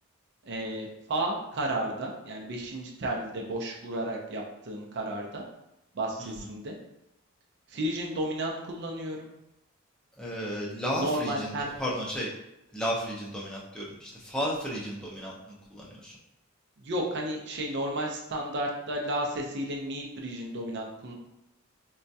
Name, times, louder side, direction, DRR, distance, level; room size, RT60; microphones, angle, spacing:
voice 1, 0.4-5.4 5.9-6.7 7.7-9.3 10.9-11.7 16.8-21.1, right 1 dB, 55° right, 0 dB, 0.5 m, -32 dB
voice 2, 10.2-12.3 12.7-16.1, equal, 5° left, -5 dB, 0.6 m, -33 dB
4.2 x 2.3 x 2.7 m, 0.86 s
head